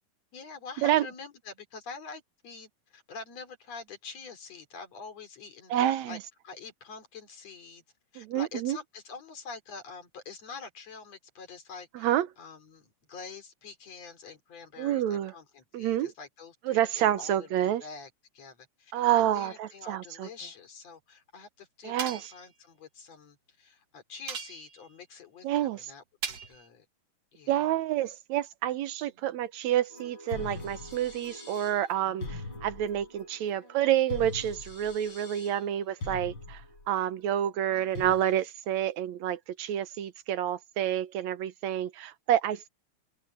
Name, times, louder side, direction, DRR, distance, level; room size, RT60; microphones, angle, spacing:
voice 1, 0.3-6.2 6.4-7.8 8.1-26.9 27.3-27.7 29.1-29.2 33.6-33.9 37.5-38.0, left 5 dB, 60° left, 4.4 m, -46 dB
voice 2, 5.7-6.2 8.2-8.8 12.0-12.3 14.8-15.3 15.7-16.1 16.7-17.8 18.9-20.3 21.8-22.2 25.4-25.8 27.5-32.3 32.6-36.6 36.9-42.7, right 11 dB, 70° right, 2.1 m, -28 dB
sound 1, 22.0-22.4 24.3-24.9 26.2-26.7, right 6 dB, 55° right, 2.8 m, -38 dB
sound 2, 29.9-38.3, left 2 dB, 40° left, 5.6 m, -42 dB
open air
omnidirectional pair, 3.4 m